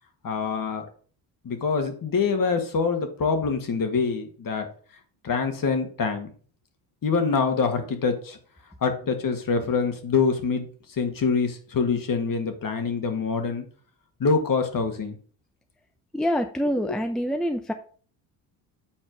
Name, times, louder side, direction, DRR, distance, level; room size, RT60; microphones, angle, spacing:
voice 1, 0.2-0.9 1.4-4.7 5.2-6.3 7.0-8.4 8.8-13.6 14.2-15.2 16.9-17.0, left 5 dB, 45° left, 6 dB, 1.8 m, -25 dB
voice 2, 16.1-17.7, equal, ahead, 7 dB, 0.7 m, -26 dB
7.4 x 4.3 x 5.2 m, 0.43 s
supercardioid pair, 70°, 47 cm